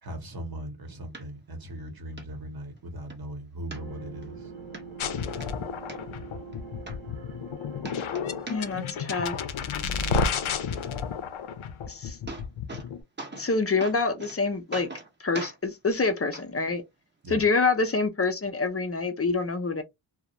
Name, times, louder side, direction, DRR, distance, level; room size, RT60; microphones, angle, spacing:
voice 1, 0.0-4.5 17.2-17.5, right 1 dB, 50° right, 0.9 m, -39 dB
sound 1, 1.1-1.2 1.7-1.8 2.2-2.3 2.7-3.2 3.7-4.3 4.7-4.8 5.2-6.0 6.5-6.6 6.9-7.5 7.8-8.9 9.1-9.7 11.7-11.8 12.0-12.9 13.2-13.5 13.8-14.4 14.7-15.1 15.3-15.6 16.3-16.4 17.3-17.4, right 2 dB, 25° right, 0.6 m, -40 dB
sound 2, 3.7-9.4, right 4 dB, 75° right, 0.7 m, -44 dB
sound 3, 5.0-13.0, left 5 dB, 80° left, 0.5 m, -31 dB
voice 2, 8.5-9.4 11.9-12.2 13.3-14.9 15.2-16.8 17.3-19.8, left 4 dB, 30° left, 0.5 m, -26 dB
2.3 x 2.0 x 2.8 m
wide cardioid pair, 75°, 48 cm